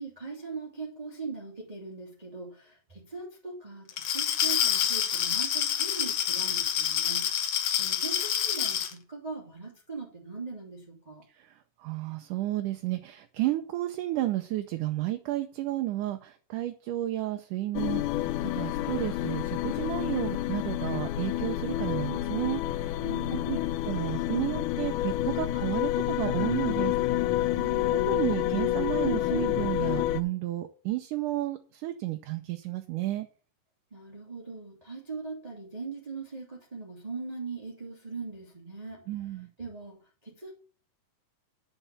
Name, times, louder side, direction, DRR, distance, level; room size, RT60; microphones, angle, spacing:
voice 1, 0.0-7.5 7.8-11.2 23.0-23.7 27.5-27.9 33.9-39.3 39.6-40.5, right 4 dB, 15° right, -3 dB, 2.0 m, -40 dB
Glass, 3.9-8.9, left 9 dB, 60° left, 1.8 m, -27 dB
voice 2, 11.8-18.0 18.5-23.0 23.3-23.6 23.8-26.9 28.1-33.3 39.1-39.5, right 15 dB, 75° right, 6 dB, 2.2 m, -32 dB
sound 1, 17.8-30.2, left 13 dB, 80° left, 2.0 m, -29 dB
9.9 x 6.0 x 6.8 m, 0.39 s
omnidirectional pair, 3.9 m